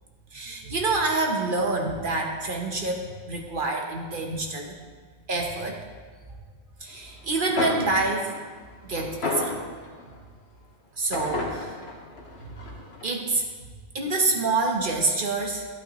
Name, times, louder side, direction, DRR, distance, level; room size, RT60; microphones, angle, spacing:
voice 1, 0.3-4.7 5.3-5.8 6.8-8.3 8.9-9.5 11.0-11.8 13.0-13.4 13.9-15.7, right 3 dB, 55° right, 1 dB, 1.1 m, -27 dB
sound 1, 7.3-7.4 7.6-10.2 11.1-13.1, left 2 dB, 85° left, 1.5 m, -32 dB
12.0 x 8.7 x 3.0 m, 1.5 s
omnidirectional pair, 1.1 m